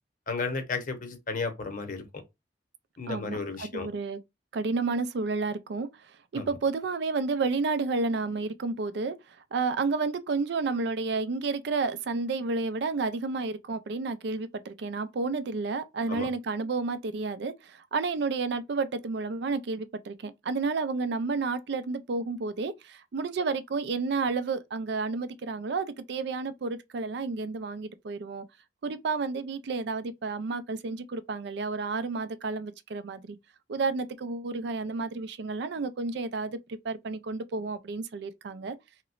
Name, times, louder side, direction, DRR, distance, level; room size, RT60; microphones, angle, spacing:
voice 1, 0.3-2.0 3.0-3.9 6.3-6.5 16.1-16.3, left 4 dB, 45° left, 0.8 m, -33 dB
voice 2, 3.1-4.2 4.5-5.9 6.3-9.2 9.5-28.4 28.8-33.4 33.7-38.8, right 4 dB, 65° right, 0.4 m, -31 dB
3.0 x 2.9 x 2.4 m
head